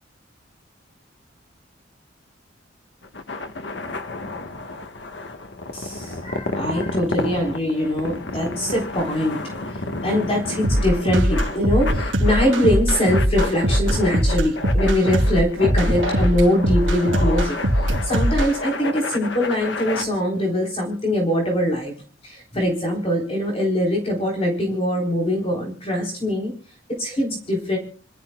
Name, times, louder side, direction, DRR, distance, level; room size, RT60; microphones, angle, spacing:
sound 1, 3.0-20.0, left 3 dB, 65° left, 1.4 m, -31 dB
voice 1, 5.7-21.9 22.2-26.5 26.9-27.8, left 1 dB, 30° left, -1 dB, 3.8 m, -23 dB
sound 2, 10.6-18.5, equal, 80° right, 2.6 m, -21 dB
27.0 x 12.5 x 2.3 m, 0.43 s
head